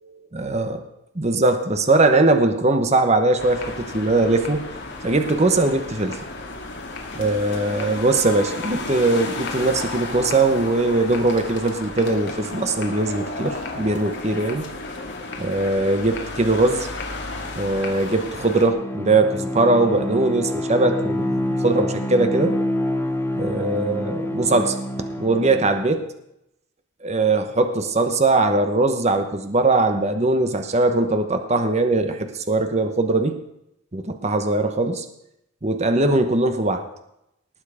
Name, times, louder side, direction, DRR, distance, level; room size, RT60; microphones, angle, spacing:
voice 1, 0.3-0.8 1.1-4.6 5.0-6.2 7.2-14.6 15.4-16.9 17.6-22.5 23.4-24.8 25.2-26.0 27.0-33.4 33.9-35.0 35.6-36.8, right 2 dB, 30° right, 7 dB, 1.0 m, -20 dB
sound 1, 3.4-18.7, left 3 dB, 55° left, 2.1 m, -33 dB
Bowed string instrument, 18.1-25.9, left 1 dB, 10° left, 0.9 m, -27 dB
19.0 x 7.3 x 5.0 m, 0.81 s
head